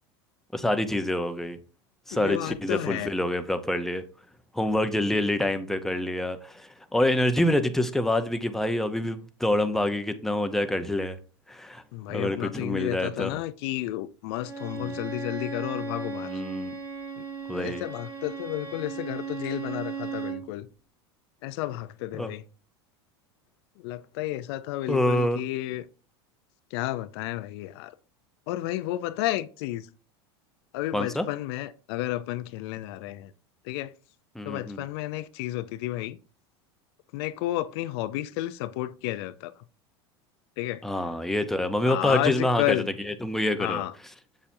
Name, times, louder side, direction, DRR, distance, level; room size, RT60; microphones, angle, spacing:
voice 1, 0.5-1.6 2.1-4.0 4.5-11.2 11.5-11.8 12.1-13.4 14.8-15.0 16.2-16.8 17.5-17.8 22.1-22.3 24.9-25.4 30.9-31.3 34.3-34.9 40.8-43.8, left 1 dB, ahead, 0.7 m, -26 dB
voice 2, 2.1-3.1 11.9-16.3 17.2-17.3 17.6-20.7 21.4-22.4 23.8-25.8 26.7-27.9 28.5-29.9 30.7-33.3 33.7-33.9 34.4-36.2 37.1-39.5 40.6-41.0 41.9-42.9 43.6-43.9, left 15 dB, 65° left, 0.5 m, -31 dB
Bowed string instrument, 14.4-20.5, right 4 dB, 30° right, 3.7 m, -36 dB
7.2 x 6.9 x 2.7 m
hypercardioid pair, 105°, 14 cm